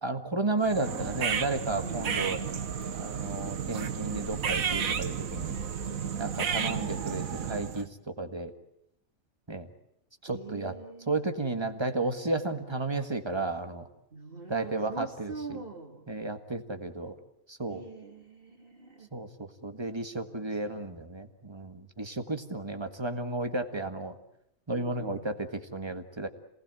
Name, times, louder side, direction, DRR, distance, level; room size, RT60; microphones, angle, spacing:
voice 1, 0.0-2.4 2.9-5.6 6.2-8.5 9.5-9.7 10.2-10.7 11.1-13.8 14.5-15.6 16.1-17.2 17.5-17.8 19.1-24.2 24.7-26.3, right 2 dB, 20° right, 7 dB, 1.6 m, -33 dB
sound 1, 0.6-7.9, right 7 dB, 90° right, 1.6 m, -32 dB
voice 2, 1.8-2.2 5.8-6.6 10.3-11.2 14.1-16.1 17.7-19.1 20.3-20.9 24.7-25.3, right 3 dB, 40° right, 4 dB, 2.7 m, -44 dB
27.5 x 19.5 x 9.1 m, 0.81 s
omnidirectional pair, 1.4 m